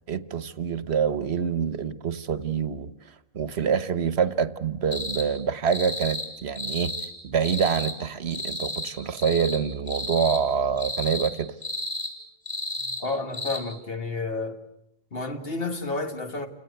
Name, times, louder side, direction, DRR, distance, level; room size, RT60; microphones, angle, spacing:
voice 1, 0.1-2.9 3.3-6.9 7.2-11.5, right 7 dB, 85° right, 1.3 m, -26 dB
sound 1, 4.9-5.3 5.7-6.3 6.6-7.1 7.4-7.9 8.3-8.9 9.2-9.6 9.9-10.4 10.8-11.3 11.6-12.1 12.5-13.0 13.3-13.6, left 1 dB, 25° left, 4.9 m, -32 dB
voice 2, 13.0-14.6 15.1-16.5, left 3 dB, 65° left, 2.2 m, -30 dB
29.5 x 18.0 x 8.0 m
omnidirectional pair, 1.1 m